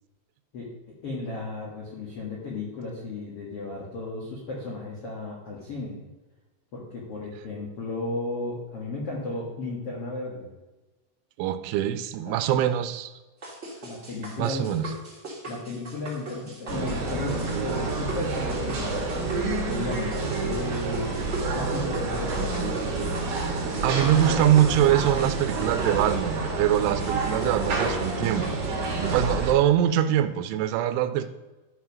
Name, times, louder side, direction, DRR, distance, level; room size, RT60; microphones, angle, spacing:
voice 1, 1.0-6.0 6.7-10.5 12.5-12.7 13.8-14.7 15.4-19.3 19.7-21.1 21.5-23.2, left 2 dB, 70° left, -4 dB, 1.4 m, -34 dB
voice 2, 11.4-13.1 14.4-14.9 23.8-28.5 28.9-31.3, right 11 dB, 85° right, 11 dB, 3.0 m, -23 dB
sound 1, 13.4-29.1, right 2 dB, 25° right, 1.4 m, -39 dB
sound 2, 16.7-29.5, right 3 dB, 55° right, 2.7 m, -28 dB
12.5 x 4.9 x 5.3 m, 1.1 s
omnidirectional pair, 5.4 m